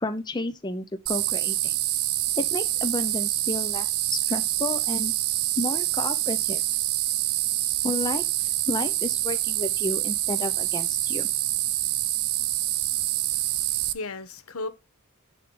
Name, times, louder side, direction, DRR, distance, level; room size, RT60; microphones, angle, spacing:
voice 1, 0.0-1.8 2.4-5.1 5.6-6.6 7.8-8.2 8.7-11.3, left 2 dB, 20° left, 0.5 m, -31 dB
sound 1, 1.1-13.9, right 15 dB, 90° right, 0.6 m, -26 dB
voice 2, 13.3-14.7, left 3 dB, 80° left, 0.9 m, -36 dB
10.0 x 3.4 x 3.8 m
head